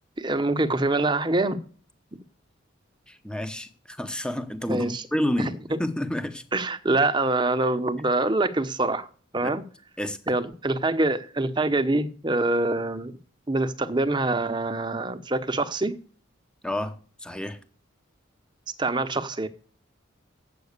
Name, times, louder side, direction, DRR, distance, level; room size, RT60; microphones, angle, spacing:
voice 1, 0.2-1.6 4.7-5.0 5.4-5.8 6.5-9.1 9.3-9.6 10.3-13.1 13.5-15.9 18.8-19.5, right 2 dB, 20° right, 0.9 m, -25 dB
voice 2, 3.1-6.4 9.4-9.5 10.0-10.2 16.6-17.6, left 1 dB, 5° left, 0.9 m, -30 dB
9.5 x 7.8 x 6.6 m
head